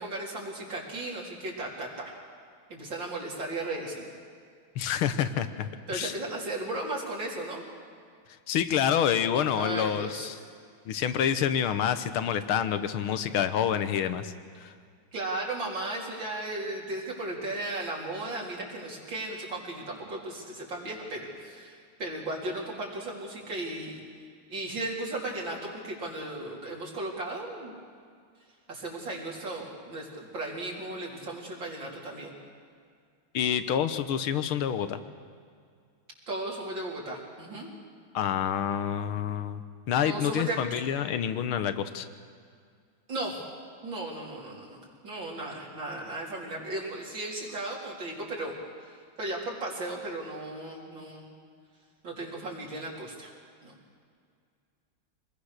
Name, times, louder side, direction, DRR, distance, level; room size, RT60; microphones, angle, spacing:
voice 1, 0.0-2.1 2.7-4.0 5.9-7.6 9.5-10.3 15.1-24.0 24.5-27.7 28.7-32.3 36.3-37.7 40.0-40.8 43.1-43.4 43.8-48.5 48.8-48.9 49.2-51.3 52.0-53.3 53.6-53.7, right 2 dB, 60° right, -3 dB, 4.6 m, -36 dB
voice 2, 4.7-6.1 8.5-10.4 10.9-14.7 33.3-35.0 38.1-39.6 39.9-42.1, left 9 dB, 80° left, 11 dB, 1.8 m, -28 dB
25.5 x 20.5 x 6.6 m, 2.2 s
omnidirectional pair, 2.3 m